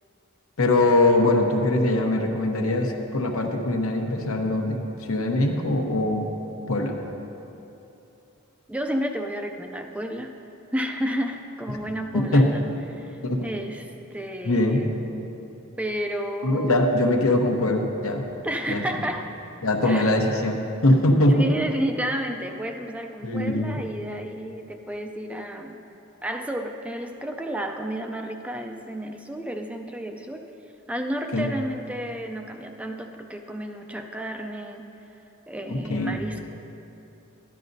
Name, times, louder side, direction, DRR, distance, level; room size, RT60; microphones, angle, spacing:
voice 1, 0.6-4.8 5.1-6.3 6.7-6.9 12.1-12.4 13.2-13.4 14.4-14.8 16.4-18.2 18.7-18.8 19.6-21.4 23.2-23.8 31.3-31.5 35.7-36.1, left 1 dB, 80° left, 2 dB, 0.9 m, -22 dB
voice 2, 8.7-10.3 10.7-12.6 13.0-14.9 15.8-16.9 18.4-19.3 19.8-20.1 21.4-25.8 26.2-30.4 30.9-35.2 35.5-36.4, equal, 5° right, 4 dB, 0.3 m, -31 dB
13.5 x 10.5 x 2.6 m, 2.9 s
head